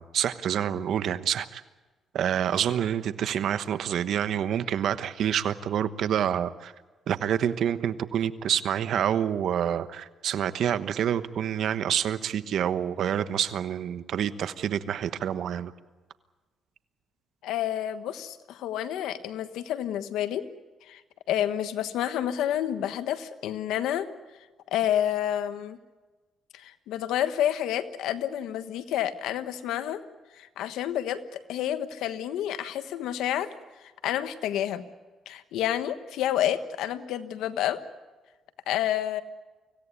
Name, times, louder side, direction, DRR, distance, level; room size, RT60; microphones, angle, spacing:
voice 1, 0.0-1.6 2.1-6.7 7.1-15.7, right 9 dB, 70° right, 13 dB, 1.1 m, -27 dB
voice 2, 17.4-20.5 20.9-21.0 21.3-24.1 24.7-25.8 26.5-30.0 30.4-33.5 34.0-34.8 35.3-37.8 38.7-39.2, left 11 dB, 90° left, 11 dB, 1.3 m, -29 dB
25.0 x 16.5 x 9.8 m, 1.3 s
cardioid pair, 90°, 0 cm